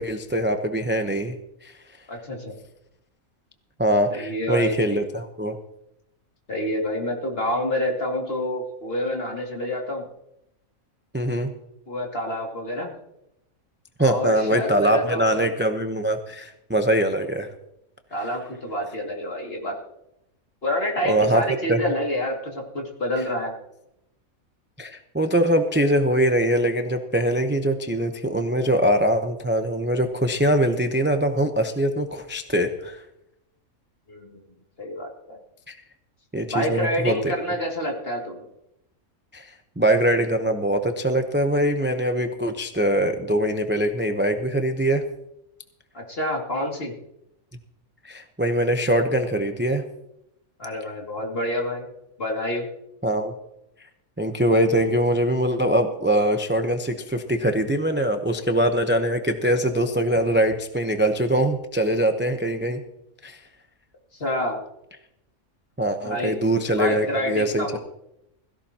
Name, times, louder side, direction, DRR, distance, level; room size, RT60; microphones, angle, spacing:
voice 1, 0.0-1.4 1.6-1.7 3.8-5.6 11.1-11.5 14.0-17.5 21.0-21.4 21.7-21.8 24.8-33.0 35.7-35.8 36.3-37.3 39.3-45.0 48.0-49.8 53.0-53.3 54.2-62.8 63.2-63.4 65.8-67.8, right 1 dB, 10° right, 6 dB, 0.6 m, -23 dB
voice 2, 2.1-2.6 4.1-5.0 6.5-10.1 11.9-12.9 14.0-15.5 18.1-19.7 20.6-23.5 34.1-34.4 34.8-35.4 36.5-38.4 45.9-46.9 50.6-51.9 52.2-52.7 64.2-64.6 66.0-66.4 66.6-67.8, left 1 dB, 40° left, 0 dB, 2.6 m, -28 dB
16.5 x 16.5 x 2.9 m, 0.83 s
omnidirectional pair, 1.5 m